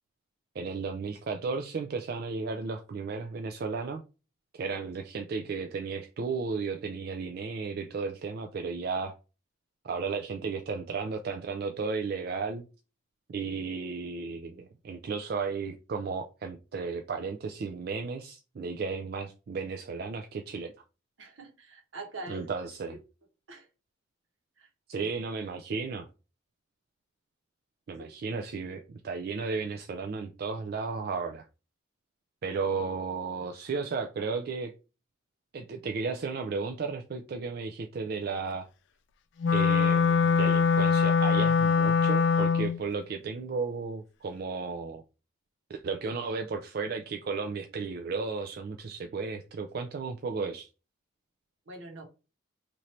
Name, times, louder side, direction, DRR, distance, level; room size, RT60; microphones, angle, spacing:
voice 1, 0.6-4.0 4.5-9.1 9.8-12.6 13.3-20.7 22.3-23.0 24.9-26.1 27.9-31.5 32.4-34.7 35.5-38.7 39.5-45.0 45.7-50.7, right 4 dB, 50° right, 0.3 m, -34 dB
voice 2, 21.2-22.5 23.5-23.7 24.6-25.1 51.7-52.0, right 2 dB, 75° right, 1.1 m, -43 dB
Wind instrument woodwind instrument, 39.4-42.8, left 6 dB, 60° left, 0.3 m, -23 dB
3.0 x 2.6 x 4.2 m
head